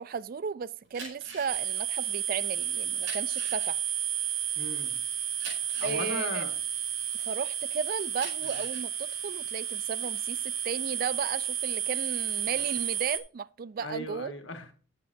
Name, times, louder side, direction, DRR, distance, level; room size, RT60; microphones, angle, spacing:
voice 1, 0.0-3.8 5.8-6.4 7.3-14.3, right 6 dB, 45° right, 0.3 m, -35 dB
sound 1, 0.8-7.5 7.9-11.8 12.2-12.9, right 3 dB, 70° right, 5.0 m, -45 dB
sound 2, 1.5-13.2, right 10 dB, 90° right, 1.5 m, -32 dB
voice 2, 4.6-5.0 5.8-6.5 8.4-8.6 13.8-14.7, left 1 dB, 70° left, 1.7 m, -37 dB
12.0 x 7.7 x 2.6 m
head